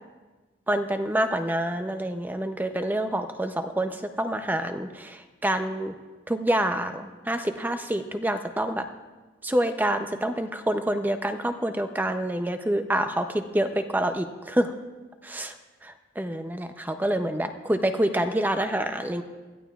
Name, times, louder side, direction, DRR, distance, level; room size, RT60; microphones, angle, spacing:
voice 1, 0.7-5.9 6.3-8.8 9.4-14.7 15.2-15.5 15.8-19.2, right 1 dB, 10° right, 8 dB, 0.5 m, -27 dB
21.0 x 14.0 x 2.3 m, 1.3 s
head